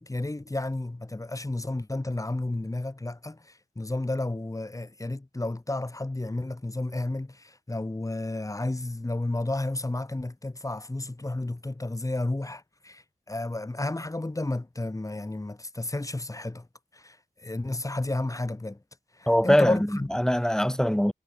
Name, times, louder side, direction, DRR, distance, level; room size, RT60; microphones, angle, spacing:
voice 1, 0.0-16.7 16.9-18.8 19.2-20.1, left 2 dB, 20° left, 2.3 m, -32 dB
voice 2, 19.3-21.1, equal, 5° left, 2.6 m, -23 dB
wide cardioid pair, 100°, 15 cm